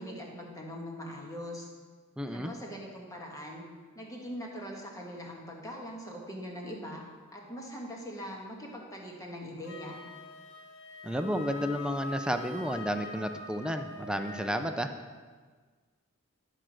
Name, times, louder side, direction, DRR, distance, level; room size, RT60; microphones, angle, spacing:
voice 1, 0.0-1.7 2.3-3.6 3.9-7.0 7.3-10.0, equal, 15° left, -1 dB, 1.4 m, -41 dB
voice 2, 2.2-2.5 11.0-14.9, equal, 5° right, 6 dB, 0.4 m, -32 dB
Wind instrument woodwind instrument, 9.6-14.8, left 3 dB, 60° left, 1.3 m, -44 dB
11.0 x 4.5 x 6.3 m, 1.5 s
head